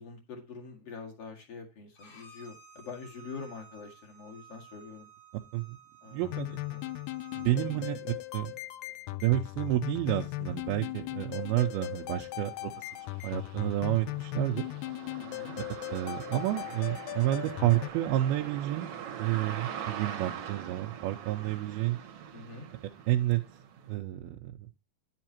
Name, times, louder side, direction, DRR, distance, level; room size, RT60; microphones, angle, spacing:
voice 1, 0.0-5.1 6.0-6.2 6.7-6.8 7.5-7.8 15.2-15.6 22.3-22.7, left 4 dB, 45° left, 1 dB, 2.5 m, -45 dB
Bowed string instrument, 2.0-7.5, right 6 dB, 65° left, 3.7 m, -54 dB
voice 2, 6.1-6.6 7.4-8.5 9.2-12.7 13.2-14.7 15.6-15.7 15.9-18.9 19.2-22.0 23.1-23.4 23.9-24.7, right 15 dB, 85° right, 1 dB, 2.5 m, -30 dB
sound 1, 6.2-17.9, left 19 dB, 85° left, 1.9 m, -38 dB
sound 2, 10.5-10.6 11.1-23.9, right 8 dB, 60° right, 1.7 m, -43 dB
10.0 x 7.7 x 2.9 m, 0.26 s
omnidirectional pair, 4.4 m